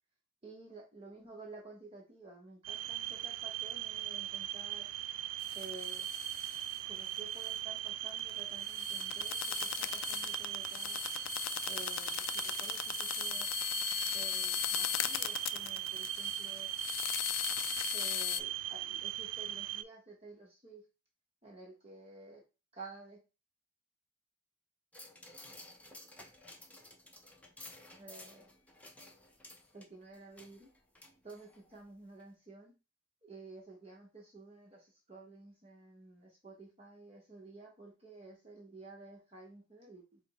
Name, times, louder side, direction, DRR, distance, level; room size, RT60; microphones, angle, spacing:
voice 1, 0.4-4.9 5.5-6.1 6.9-11.0 11.6-13.5 14.1-16.7 17.9-20.8 21.4-22.4 22.7-23.2 28.0-28.5 29.7-30.7 31.2-32.7 33.2-40.2, right 3 dB, 30° right, -2 dB, 0.9 m, -52 dB
sound 1, 2.6-19.8, right 13 dB, 70° right, 0.3 m, -39 dB
sound 2, 5.4-6.8 7.1-7.2 7.4-7.8 8.1-18.4, left 14 dB, 85° left, 0.3 m, -38 dB
sound 3, 24.9-31.8 32.2-32.3, left 1 dB, 5° left, 0.6 m, -54 dB
5.0 x 2.0 x 4.0 m, 0.30 s
head